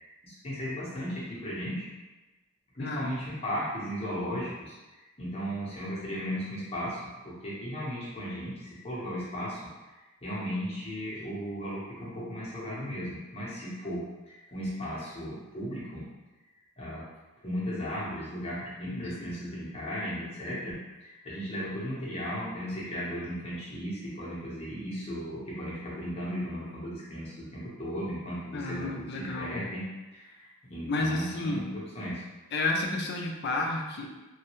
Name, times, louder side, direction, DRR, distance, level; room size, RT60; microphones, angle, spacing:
voice 1, 0.2-1.9 2.7-4.7 5.2-9.6 10.2-16.0 16.8-17.0 17.4-29.8 30.1-32.2, equal, 25° left, -7 dB, 0.8 m, -36 dB
voice 2, 2.8-3.1 18.9-19.3 28.5-29.6 30.8-31.7 32.5-34.1, left 2 dB, 50° left, 0 dB, 0.4 m, -31 dB
3.1 x 2.3 x 3.0 m, 1.1 s
head